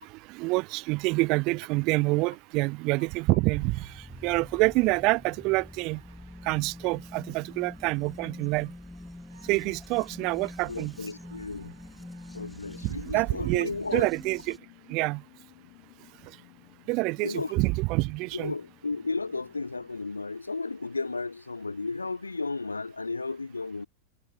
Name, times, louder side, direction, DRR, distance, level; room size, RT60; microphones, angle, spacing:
voice 1, 0.0-6.0 6.4-8.7 9.4-11.0 12.8-14.6 14.9-15.2 16.9-18.5, right 25 dB, 40° right, 0.8 m, -27 dB
sound 1, 2.9-13.0, right 11 dB, 60° right, 6.0 m, -63 dB
sound 2, 3.4-14.6, left 1 dB, 5° left, 0.8 m, -45 dB
voice 2, 10.7-11.7 12.3-14.1 17.2-17.5 18.3-23.9, left 3 dB, 80° left, 0.5 m, -34 dB
sound 3, 11.4-20.0, left 35 dB, 45° left, 7.5 m, -57 dB
figure-of-eight pair, 90°, 0 cm